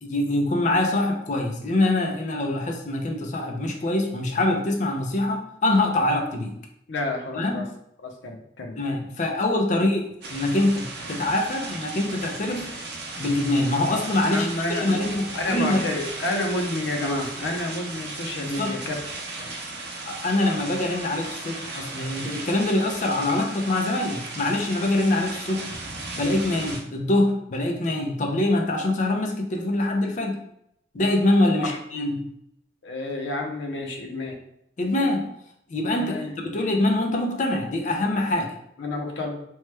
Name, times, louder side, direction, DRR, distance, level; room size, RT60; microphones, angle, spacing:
voice 1, 0.0-6.6 7.3-7.7 8.8-12.7 13.2-15.9 18.4-18.8 20.1-25.7 26.1-30.4 30.9-32.3 34.8-35.3 35.7-36.2 36.5-38.5, left 1 dB, 45° left, 2 dB, 0.5 m, -24 dB
voice 2, 6.9-7.6 8.0-8.8 14.3-14.9 15.3-18.9 19.4-19.5 31.5-31.8 32.8-34.4 36.0-36.3 38.8-39.4, left 2 dB, 85° left, 2 dB, 0.6 m, -29 dB
sound 1, 10.2-26.8, right 3 dB, 60° right, 0.6 m, -36 dB
3.0 x 2.2 x 3.2 m, 0.74 s
head